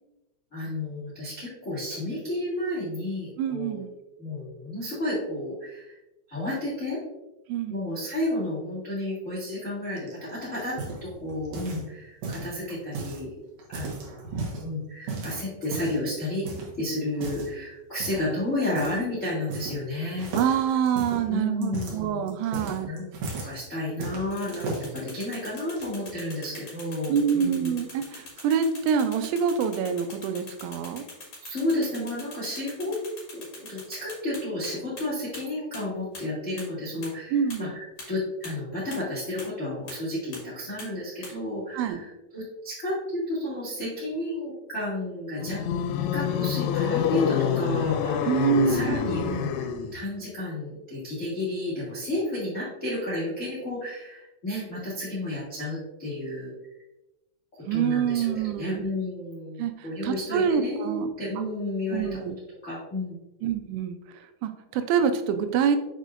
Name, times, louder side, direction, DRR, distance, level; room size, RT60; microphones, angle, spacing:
voice 1, 0.5-3.8 4.2-6.0 6.3-7.0 7.7-10.7 11.0-13.3 13.7-14.2 14.6-16.4 16.8-20.5 21.3-22.2 22.8-27.8 31.4-33.0 33.3-45.6 46.1-56.5 57.7-62.2 62.6-63.1, left 1 dB, 65° left, -9 dB, 0.7 m, -32 dB
voice 2, 3.4-3.9 7.5-7.8 20.3-22.9 27.1-31.0 37.3-37.7 41.7-42.0 48.3-49.0 57.7-58.8 59.6-61.1 61.9-62.4 63.4-64.0 64.4-65.8, right 7 dB, 85° right, 8 dB, 3.0 m, -26 dB
sound 1, 10.0-11.9 12.2-13.2 13.6-14.6 15.1-16.1 16.5-16.7 17.1-17.5 18.0-18.3 18.8-19.0 19.3-19.9 20.2-23.6 24.0-24.9 25.6-26.1, right 3 dB, 65° right, 2.2 m, -35 dB
sound 2, 24.3-34.7 35.0-35.1 35.3-35.4 35.7-35.8 36.1-36.2 36.6-36.7 37.0-37.1 37.5-37.6 38.0-38.1 38.4-38.5 38.9-39.0 39.4-39.5 39.9-40.0 40.3-40.4 40.8-40.9 41.2-41.3, left 3 dB, 40° left, 2.0 m, -42 dB
sound 3, 45.4-50.0, left 8 dB, 90° left, 2.9 m, -27 dB
6.6 x 6.3 x 2.5 m, 0.99 s
omnidirectional pair, 5.3 m